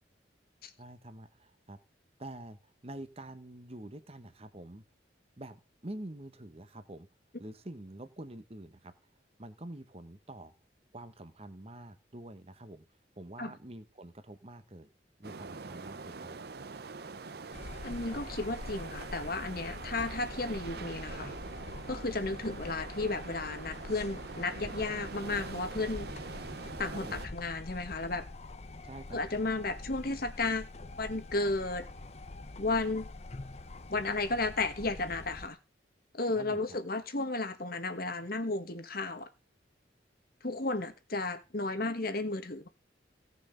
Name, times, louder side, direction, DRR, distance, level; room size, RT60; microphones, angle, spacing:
voice 1, 0.8-1.8 2.2-4.8 5.4-7.1 7.4-8.9 9.4-10.5 10.9-12.8 13.2-14.9 15.2-16.4 26.9-27.2 28.8-29.2 36.3-36.6, right 1 dB, 35° right, 1.2 m, -46 dB
sound 1, 15.2-27.3, right 4 dB, 60° right, 0.7 m, -44 dB
sound 2, 17.5-35.5, left 2 dB, 35° left, 0.7 m, -45 dB
voice 2, 17.8-21.3 21.9-26.1 26.8-28.2 29.1-30.7 31.0-31.9 32.6-33.1 33.9-35.6 36.1-39.3 40.4-42.7, left 2 dB, 55° left, 1.7 m, -33 dB
17.0 x 6.4 x 5.2 m
head